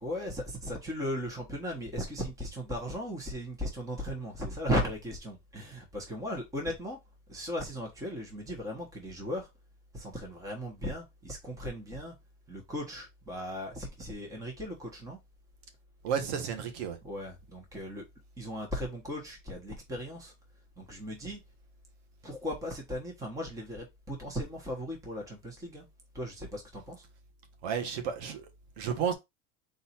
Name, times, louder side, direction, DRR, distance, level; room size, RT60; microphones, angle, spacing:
voice 1, 0.0-7.0 7.3-9.5 9.9-12.1 12.5-15.2 17.0-18.0 18.4-20.3 20.8-21.4 22.2-25.8 26.1-27.0, equal, 10° right, 1.1 m, -37 dB
voice 2, 16.0-17.0 27.6-28.5 28.8-29.1, right 7 dB, 90° right, 1.3 m, -32 dB
4.0 x 2.7 x 4.3 m
cardioid pair, 160°, 30 cm